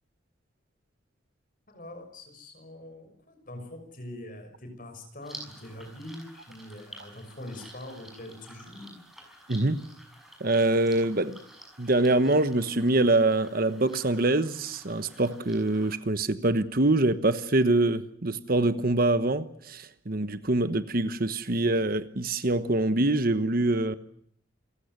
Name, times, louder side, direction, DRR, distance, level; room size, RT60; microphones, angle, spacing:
voice 1, 1.7-9.0, left 1 dB, 45° left, 7 dB, 6.0 m, -43 dB
sound 1, 5.2-16.0, right 1 dB, ahead, 6.0 m, -50 dB
voice 2, 9.5-9.8 10.4-11.4 11.8-24.0, right 2 dB, 45° right, 12 dB, 1.2 m, -25 dB
28.5 x 16.0 x 9.5 m, 0.66 s
head